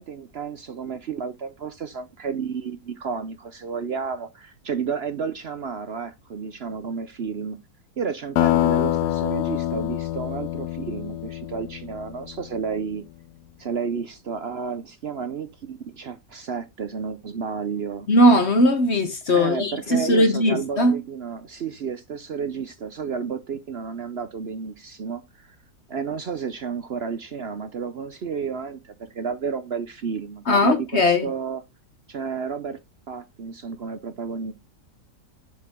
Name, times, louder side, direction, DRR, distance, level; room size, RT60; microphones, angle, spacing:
voice 1, 0.0-7.6 8.0-13.0 13.6-18.1 19.3-25.6 25.9-31.6 32.1-32.8 33.1-34.5, right 6 dB, 55° right, 0.7 m, -31 dB
sound 1, 8.4-12.6, left 14 dB, 75° left, 1.1 m, -25 dB
voice 2, 18.1-21.0 30.5-31.3, left 1 dB, 45° left, 1.1 m, -19 dB
6.9 x 6.7 x 3.5 m
omnidirectional pair, 1.9 m